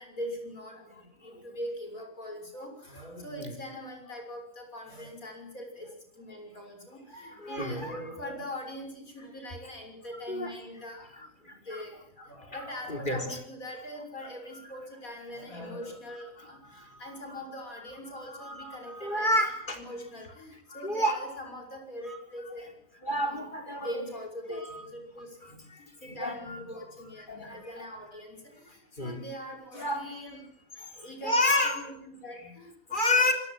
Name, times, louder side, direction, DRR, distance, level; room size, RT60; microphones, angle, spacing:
voice 1, 0.0-12.0 12.3-22.7 23.1-23.5 23.8-25.6 26.0-30.4 30.7-32.7 33.1-33.3, equal, 75° left, 3 dB, 6.9 m, -42 dB
voice 2, 3.2-3.5 7.1-8.0 10.3-10.5 11.4-11.8 12.2-12.3 12.6-13.2 16.6-17.2 18.3-19.8 20.7-21.2 22.1-22.2 23.0-24.0 24.5-24.8 25.4-26.6 27.3-27.7 29.0-29.2 29.7-30.0 31.2-31.8 32.9-33.3, left 1 dB, 35° left, 5 dB, 4.1 m, -30 dB
27.0 x 18.5 x 7.6 m, 0.72 s
omnidirectional pair, 1.5 m